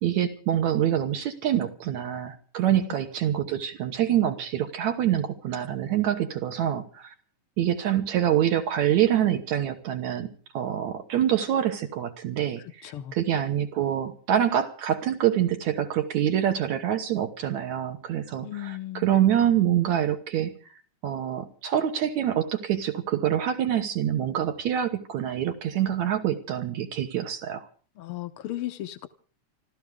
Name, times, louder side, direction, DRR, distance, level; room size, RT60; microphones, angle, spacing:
voice 1, 0.0-7.1 7.6-10.3 10.5-20.5 21.0-27.7, right 10 dB, 75° right, 7 dB, 2.5 m, -26 dB
voice 2, 12.6-13.2 18.4-19.1 28.0-29.1, left 14 dB, 70° left, 8 dB, 1.4 m, -36 dB
28.5 x 13.5 x 3.6 m, 0.42 s
omnidirectional pair, 3.4 m